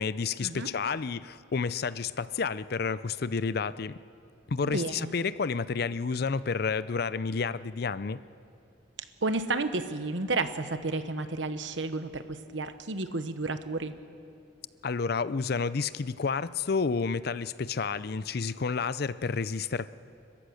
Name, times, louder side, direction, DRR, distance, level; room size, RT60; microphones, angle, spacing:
voice 1, 0.0-4.0 4.5-8.2 14.8-19.9, left 5 dB, 55° left, 16 dB, 0.5 m, -30 dB
voice 2, 4.6-5.1 9.2-13.9, right 3 dB, 75° right, 10 dB, 1.1 m, -31 dB
30.0 x 14.5 x 6.5 m, 2.5 s
head